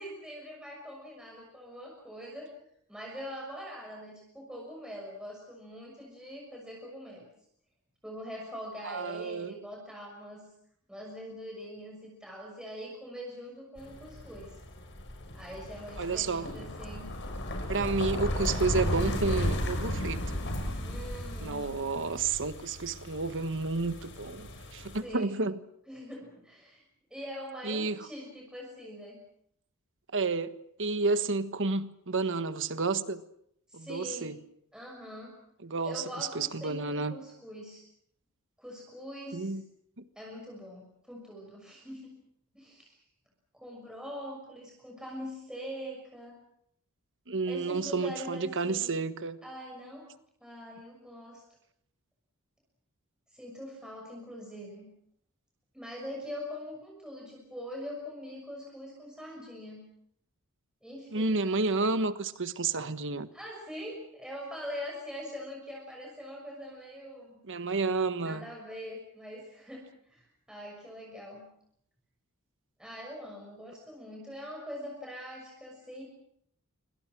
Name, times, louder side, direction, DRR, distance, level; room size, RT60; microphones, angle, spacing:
voice 1, 0.0-2.5 2.9-7.3 8.0-10.4 10.9-14.6 15.3-17.1 20.8-21.7 24.8-25.4 25.9-26.8 27.1-29.2 33.7-34.3 34.7-35.4 35.8-37.8 38.6-39.5 40.2-42.2 42.5-43.0 43.5-46.4 47.5-48.9 49.4-50.1 50.4-51.4 53.3-54.9 55.7-59.8 60.8-61.3 63.3-67.4 68.2-71.4 72.8-76.0, equal, 5° right, 6.3 m, -43 dB
voice 2, 8.8-9.5 16.0-16.5 17.7-20.2 21.4-25.5 27.6-28.0 30.1-30.5 30.8-33.2 33.7-34.4 35.6-37.2 39.3-39.6 47.3-49.4 61.1-63.3 67.5-68.5, right 3 dB, 60° right, 1.4 m, -30 dB
sound 1, 13.8-25.0, left 1 dB, 55° left, 6.4 m, -35 dB
27.5 x 25.5 x 6.2 m
head